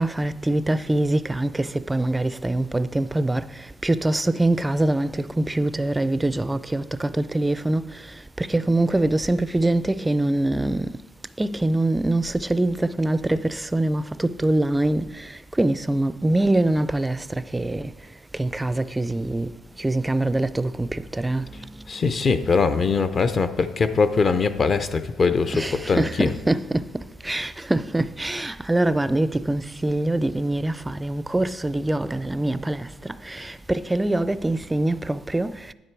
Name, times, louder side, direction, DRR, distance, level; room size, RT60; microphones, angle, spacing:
voice 1, 0.0-3.4 3.8-7.8 8.4-10.9 11.4-15.0 15.6-17.2 17.5-17.9 18.4-19.5 19.8-21.4 25.5-26.8 27.2-35.5, right 1 dB, 10° right, 0.4 m, -24 dB
voice 2, 21.9-26.3, left 4 dB, 40° left, 0.6 m, -22 dB
9.8 x 9.1 x 4.5 m
cardioid pair, 115°, 0 cm